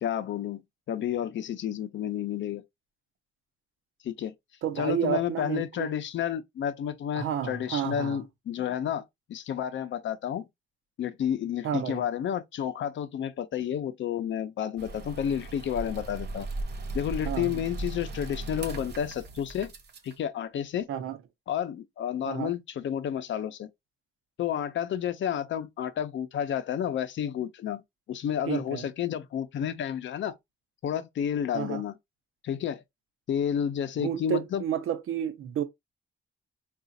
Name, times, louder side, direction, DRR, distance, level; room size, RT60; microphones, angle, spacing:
voice 1, 0.0-2.6 4.0-4.3 4.8-10.5 11.0-16.5 16.9-19.7 20.0-20.9 21.5-23.7 24.4-27.8 28.1-30.3 30.8-31.9 32.4-32.8 33.3-34.6, left 9 dB, 65° left, 0.6 m, -31 dB
voice 2, 4.6-5.9 7.1-8.2 11.6-12.1 17.2-17.6 20.9-21.2 22.2-22.5 28.5-28.8 31.5-31.8 34.0-35.6, right 9 dB, 85° right, 0.7 m, -31 dB
sound 1, 14.8-20.1, right 2 dB, 50° right, 0.8 m, -37 dB
4.8 x 2.4 x 2.6 m
wide cardioid pair, 170°, 21 cm